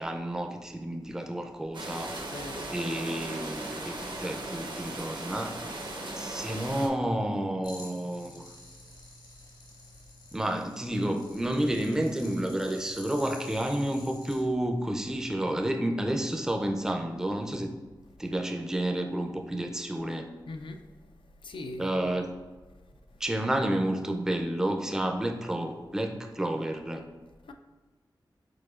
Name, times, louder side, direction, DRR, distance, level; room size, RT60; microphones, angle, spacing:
voice 1, 0.0-2.1 2.7-5.5 6.2-8.4 10.3-17.7 18.2-20.3 21.8-22.3 23.2-27.0, right 1 dB, 5° right, 4 dB, 0.4 m, -30 dB
sound 1, 1.7-6.9, right 2 dB, 65° right, 0.6 m, -37 dB
voice 2, 2.3-2.7 20.5-20.8 21.4-22.2 27.5-27.6, left 2 dB, 85° left, 6 dB, 0.4 m, -40 dB
sound 2, 7.6-14.4, left 2 dB, 65° left, 1.2 m, -50 dB
4.9 x 4.0 x 2.3 m, 1.3 s
wide cardioid pair, 95°, 8 cm